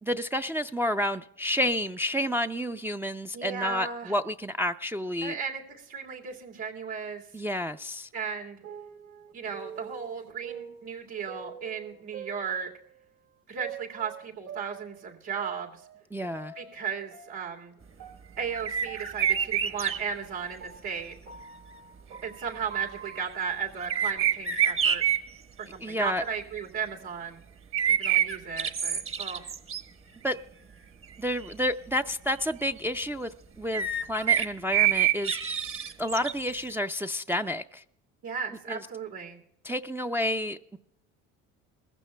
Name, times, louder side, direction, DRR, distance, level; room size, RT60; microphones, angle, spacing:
voice 1, 0.0-5.3 7.3-8.1 16.1-16.5 25.8-26.2 30.2-30.4 31.2-33.3 33.6-35.4 36.0-37.8 38.7-38.8 39.6-40.8, left 1 dB, 5° right, 5 dB, 0.4 m, -30 dB
voice 2, 3.3-4.1 5.2-7.2 8.1-8.6 9.3-12.7 13.5-15.8 16.5-17.8 18.4-21.1 22.2-25.0 25.6-27.4 27.9-29.5 38.2-39.4, right 6 dB, 85° right, -1 dB, 2.9 m, -35 dB
sound 1, 8.2-13.1 13.6-16.8 17.1-23.2, right 8 dB, 60° right, 2.0 m, -45 dB
sound 2, 18.6-20.0 23.8-25.2 27.7-29.8 30.3-30.4 31.0-31.1 31.3-31.4 33.7-36.4, right 9 dB, 40° right, 1.2 m, -26 dB
20.5 x 15.0 x 2.2 m, 0.73 s
hypercardioid pair, 70°, 34 cm